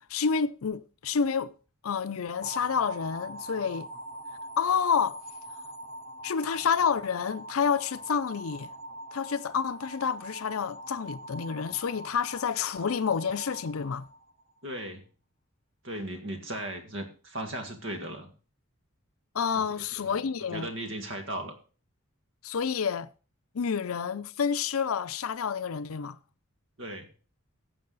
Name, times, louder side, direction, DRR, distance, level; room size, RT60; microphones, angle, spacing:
voice 1, 0.1-1.5 1.8-3.9 4.6-5.2 6.2-8.7 9.1-14.1 19.3-20.7 22.4-23.1 23.5-26.2, left 6 dB, 80° left, 0.5 m, -29 dB
sound 1, 2.4-14.6, right 1 dB, 25° left, 0.7 m, -43 dB
voice 2, 14.6-15.0 15.8-18.3 19.5-20.2 20.5-21.6 26.8-27.1, right 1 dB, 60° right, 1.9 m, -37 dB
14.0 x 7.7 x 4.0 m
head